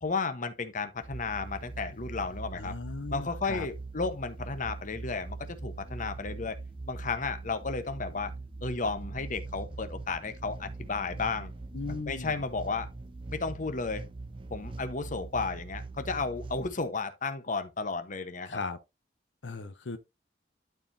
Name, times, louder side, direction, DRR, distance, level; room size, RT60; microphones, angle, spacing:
voice 1, 0.0-2.8 3.1-6.6 6.9-8.3 8.6-11.5 11.9-12.9 13.3-14.1 14.5-18.6, left 4 dB, 45° left, 1.0 m, -33 dB
sound 1, 1.0-16.7, right 3 dB, 30° right, 0.4 m, -42 dB
voice 2, 2.5-3.7 11.7-12.5 18.4-18.8 19.4-20.0, left 4 dB, 90° left, 0.8 m, -37 dB
12.0 x 4.6 x 2.7 m
head